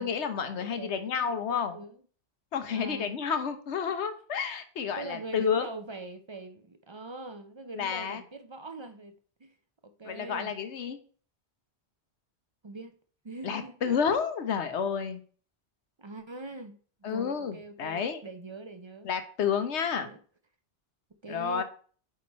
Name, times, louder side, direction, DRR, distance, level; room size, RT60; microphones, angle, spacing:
voice 1, 0.0-1.8 2.5-5.7 7.7-8.2 10.0-11.0 13.4-15.2 17.0-18.2 19.0-20.1 21.3-21.6, left 7 dB, 90° left, 1.2 m, -30 dB
voice 2, 0.5-2.0 2.7-3.2 5.0-9.5 9.8-10.5 12.6-12.9 13.2-14.0 16.0-19.1 20.0-20.2 21.2-21.6, right 3 dB, 40° right, 0.4 m, -42 dB
8.4 x 3.7 x 4.2 m
omnidirectional pair, 1.1 m